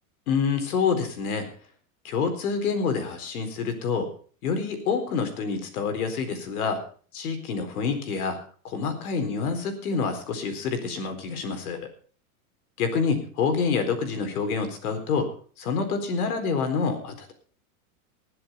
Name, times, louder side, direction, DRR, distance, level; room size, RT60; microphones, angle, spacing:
voice 1, 0.3-1.5 2.0-4.1 4.4-6.8 7.1-8.4 8.6-11.9 12.8-15.3 15.6-17.3, left 5 dB, 80° left, 7 dB, 4.2 m, -27 dB
20.0 x 7.7 x 5.7 m, 0.42 s
supercardioid pair, 120°, 43 cm